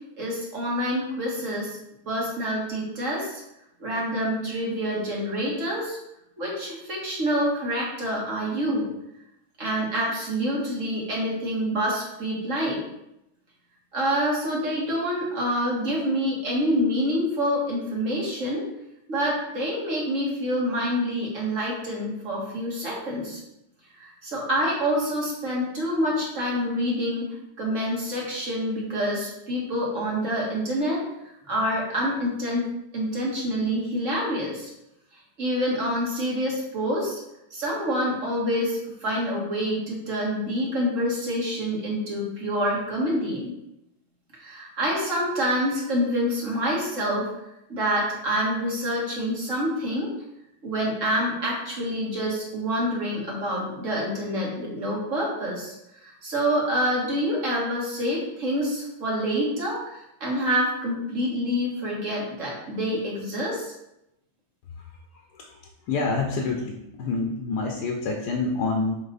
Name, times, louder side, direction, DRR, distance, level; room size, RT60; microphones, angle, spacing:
voice 1, 0.2-1.8 2.1-3.4 3.8-6.0 6.4-8.9 9.6-12.8 13.9-18.6 19.1-23.4 24.0-27.3 27.6-31.0 31.5-32.7 32.9-34.7 35.4-37.2 37.5-43.5 44.4-47.3 47.7-50.1 50.6-55.8 56.0-63.7, equal, 45° right, -4 dB, 2.0 m, -27 dB
voice 2, 65.3-69.0, left 3 dB, 70° left, 2 dB, 1.3 m, -28 dB
6.8 x 4.0 x 4.1 m, 0.85 s
omnidirectional pair, 1.9 m